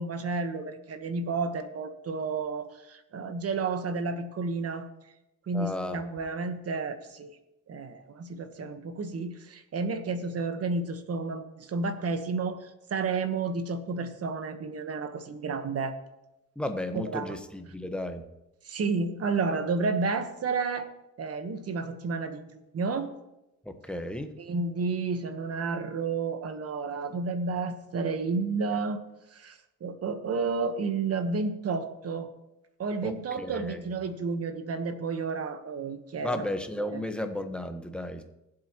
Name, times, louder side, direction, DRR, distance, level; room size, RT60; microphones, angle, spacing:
voice 1, 0.0-4.9 5.5-7.3 7.7-16.0 16.9-17.3 18.6-20.9 21.2-22.4 22.7-23.1 24.4-29.0 29.3-32.3 32.8-36.3 36.9-37.0, right 4 dB, 50° right, 9 dB, 1.3 m, -31 dB
voice 2, 5.5-6.0 16.5-18.2 23.6-24.3 33.0-33.9 36.2-38.2, left 1 dB, 5° left, 6 dB, 1.2 m, -34 dB
20.5 x 7.8 x 3.0 m, 0.92 s
cardioid pair, 90°, 30 cm